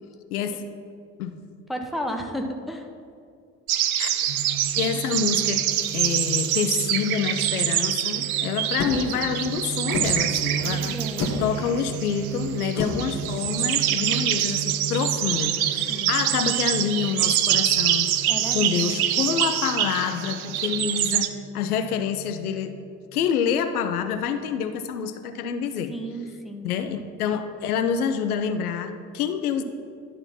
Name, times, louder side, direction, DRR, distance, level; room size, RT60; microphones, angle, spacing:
voice 1, 0.3-0.6 1.2-1.4 3.8-4.1 4.7-5.7 5.9-11.0 11.4-18.1 18.5-22.8 23.1-25.9 26.6-29.6, left 7 dB, 75° left, 9 dB, 0.6 m, -27 dB
voice 2, 1.7-2.9 10.6-11.3 15.9-16.2 18.3-19.0 25.9-26.7, equal, ahead, 4 dB, 0.7 m, -33 dB
sound 1, 3.7-21.3, right 11 dB, 70° right, 0.5 m, -25 dB
sound 2, 4.3-23.5, right 8 dB, 35° right, 0.7 m, -36 dB
sound 3, 8.8-14.4, left 3 dB, 40° left, 1.3 m, -33 dB
11.0 x 3.9 x 5.7 m, 2.3 s
figure-of-eight pair, 55°, 45 cm